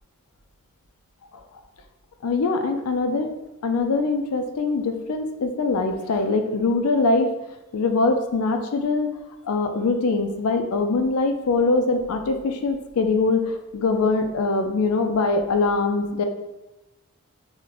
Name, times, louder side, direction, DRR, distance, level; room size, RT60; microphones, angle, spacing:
voice 1, 2.2-3.3 3.6-7.3 7.7-9.1 9.4-16.2, left 3 dB, 80° left, 6 dB, 0.4 m, -22 dB
3.1 x 2.2 x 3.8 m, 1.0 s
head